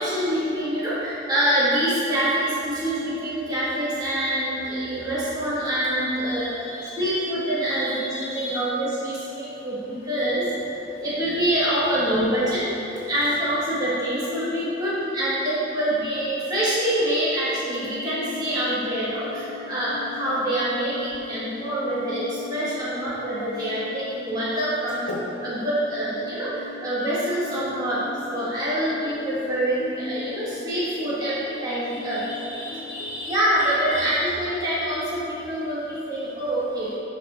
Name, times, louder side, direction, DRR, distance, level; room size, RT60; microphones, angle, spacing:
voice 1, 0.0-6.7 7.0-10.5 11.0-12.7 13.1-25.0 25.4-32.2 33.2-37.0, right 1 dB, 20° right, -10 dB, 1.5 m, -25 dB
voice 2, 6.0-7.1 7.6-8.6 20.2-20.4 31.9-34.1, left 1 dB, 70° left, -5 dB, 1.4 m, -36 dB
sound 1, 17.7-33.3, left 5 dB, 35° left, 0.3 m, -40 dB
10.5 x 4.2 x 4.1 m, 2.9 s
head